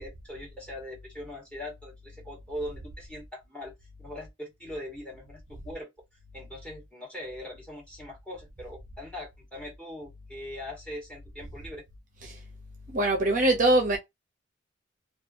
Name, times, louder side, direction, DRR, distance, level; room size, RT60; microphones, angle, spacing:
voice 1, 0.0-3.7 4.0-5.9 6.3-11.8, left 1 dB, 5° left, 1.5 m, -41 dB
voice 2, 12.9-14.0, right 1 dB, 40° right, 0.7 m, -22 dB
2.7 x 2.4 x 2.6 m
head